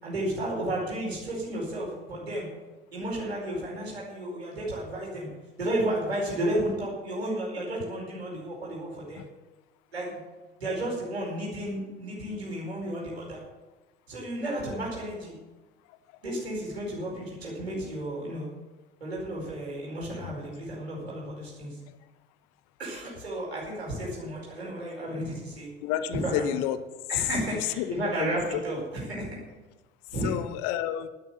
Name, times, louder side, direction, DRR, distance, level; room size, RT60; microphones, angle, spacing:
voice 1, 0.0-2.5 2.9-5.3 5.6-9.2 9.9-10.2 10.6-13.4 14.1-15.3 16.2-18.5 19.0-21.7 22.8-25.7 26.1-26.5 27.1-29.4 30.1-30.3, right 1 dB, 80° right, -4 dB, 4.9 m, -32 dB
voice 2, 25.8-26.8 27.1-28.6 30.2-31.1, left 11 dB, 55° left, 13 dB, 0.9 m, -30 dB
11.5 x 11.0 x 7.4 m, 1.2 s
figure-of-eight pair, 65°, 31 cm